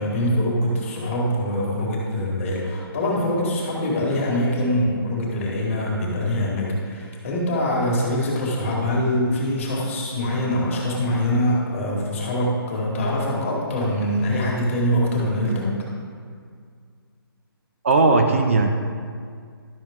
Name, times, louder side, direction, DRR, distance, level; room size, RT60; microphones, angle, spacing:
voice 1, 0.0-15.7, left 1 dB, 35° left, -3 dB, 1.8 m, -23 dB
voice 2, 17.8-18.7, right 3 dB, 35° right, 4 dB, 0.4 m, -17 dB
11.5 x 6.0 x 3.6 m, 2.1 s
hypercardioid pair, 170°, 13 cm